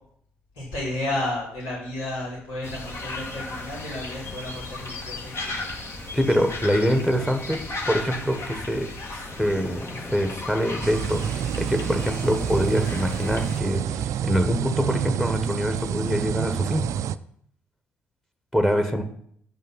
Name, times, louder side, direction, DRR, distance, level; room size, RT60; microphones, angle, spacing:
voice 1, 0.5-5.7, left 1 dB, 75° left, -8 dB, 3.5 m, -32 dB
sound 1, 2.6-13.6, left 2 dB, 45° left, 1.6 m, -35 dB
voice 2, 6.1-16.9 18.5-19.0, equal, 5° left, 7 dB, 1.4 m, -25 dB
Splash splatter, 9.2-13.2, left 1 dB, 25° left, 2.0 m, -44 dB
sound 2, 10.8-17.1, right 9 dB, 55° right, 0.4 m, -28 dB
7.7 x 5.5 x 5.8 m, 0.66 s
hypercardioid pair, 50°, 6 cm